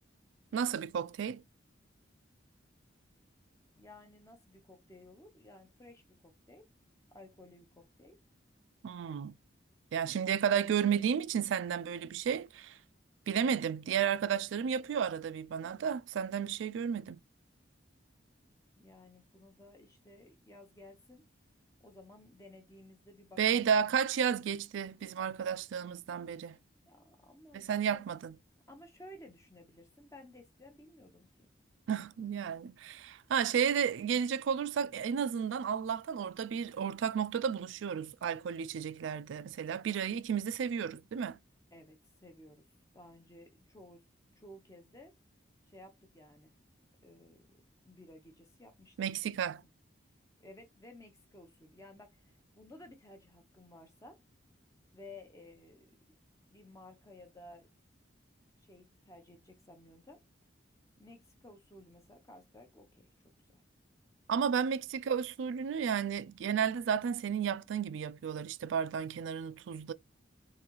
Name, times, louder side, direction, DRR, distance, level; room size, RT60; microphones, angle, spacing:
voice 1, 0.5-1.4 8.8-9.3 9.9-12.8 13.3-17.2 23.4-26.6 27.5-28.4 31.9-41.4 49.0-49.6 64.3-69.9, right 7 dB, 75° right, 0.3 m, -32 dB
voice 2, 3.8-6.7 7.1-8.2 18.8-21.2 21.8-23.9 26.9-28.0 28.7-31.5 41.7-42.7 42.9-44.0 44.4-45.1 45.6-46.5 47.0-47.4 47.8-49.0 49.3-49.7 50.4-54.2 54.9-55.9 56.5-57.7 58.6-60.2 60.9-63.6, left 1 dB, 15° left, 0.6 m, -55 dB
3.8 x 2.6 x 3.0 m
head